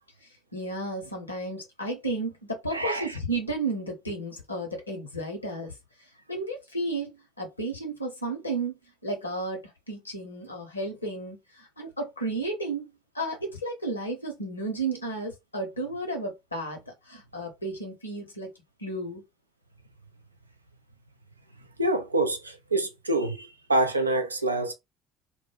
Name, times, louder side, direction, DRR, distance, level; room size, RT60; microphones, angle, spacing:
voice 1, 0.2-5.7 6.3-8.8 9.0-18.5 18.8-19.2, right 2 dB, 85° left, 0.7 m, -33 dB
voice 2, 2.7-3.2 21.8-24.7, right 2 dB, 85° right, 0.4 m, -26 dB
2.2 x 2.1 x 3.2 m
figure-of-eight pair, 60°, 0 cm